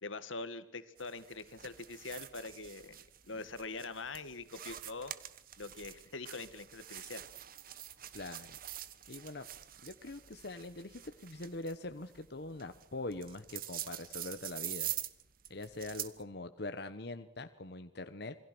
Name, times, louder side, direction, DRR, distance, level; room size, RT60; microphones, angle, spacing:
voice 1, 0.0-3.0 3.2-5.1 5.6-7.2, left 3 dB, 85° left, 12 dB, 1.9 m, -43 dB
sound 1, 1.0-16.2, right 12 dB, 50° right, 1.3 m, -46 dB
voice 2, 8.1-8.6 9.1-9.5 9.8-14.9 15.5-18.3, left 2 dB, 55° left, 9 dB, 1.1 m, -43 dB
27.5 x 23.0 x 6.2 m, 0.73 s
head